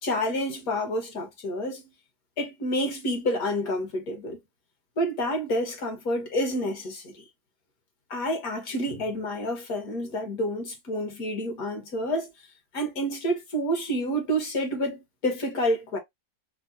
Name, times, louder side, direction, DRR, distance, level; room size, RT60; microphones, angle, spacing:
voice 1, 0.0-1.8 2.4-4.4 5.0-7.2 8.1-12.3 12.7-16.0, equal, 70° left, 1.7 m, -29 dB
5.0 x 2.0 x 2.6 m
omnidirectional pair, 1.6 m